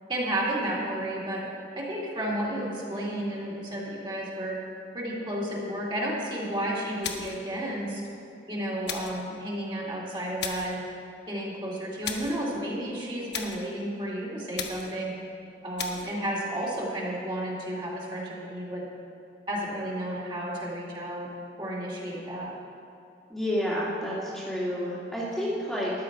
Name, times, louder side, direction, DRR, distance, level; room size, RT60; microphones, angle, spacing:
voice 1, 0.1-1.4 1.8-4.6 4.9-8.0 8.5-10.8 11.3-15.1 15.6-18.8 19.5-21.3 21.6-22.5, right 1 dB, 25° right, -4 dB, 2.4 m, -32 dB
sound 1, 7.0-7.5 8.9-9.2 10.4-10.8 12.0-12.4 13.3-13.7 14.6-15.0 15.8-16.1, left 7 dB, 70° left, 1.1 m, -35 dB
voice 2, 23.3-25.9, equal, ahead, -8 dB, 2.0 m, -30 dB
13.5 x 11.0 x 4.8 m, 2.7 s
head